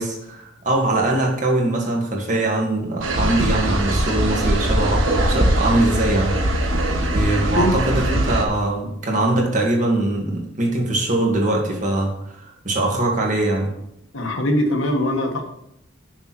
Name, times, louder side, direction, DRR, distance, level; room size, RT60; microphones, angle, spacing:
voice 1, 0.0-6.4 7.1-13.7, right 2 dB, 40° right, 0 dB, 1.8 m, -22 dB
sound 1, 3.0-8.4, right 1 dB, 80° right, 1.4 m, -21 dB
voice 2, 14.1-15.4, left 1 dB, 80° left, 2 dB, 1.6 m, -21 dB
6.9 x 5.8 x 6.1 m, 0.77 s
head